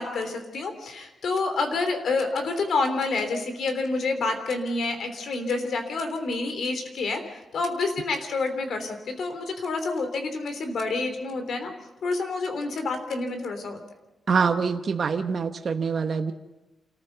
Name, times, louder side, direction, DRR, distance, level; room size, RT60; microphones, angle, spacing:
voice 1, 0.0-7.2 7.5-11.7 12.0-13.8, left 3 dB, 70° left, 7 dB, 3.3 m, -28 dB
voice 2, 14.3-16.3, right 5 dB, 50° right, 6 dB, 1.0 m, -25 dB
27.5 x 14.5 x 6.8 m, 1.0 s
cardioid pair, 105°, 0 cm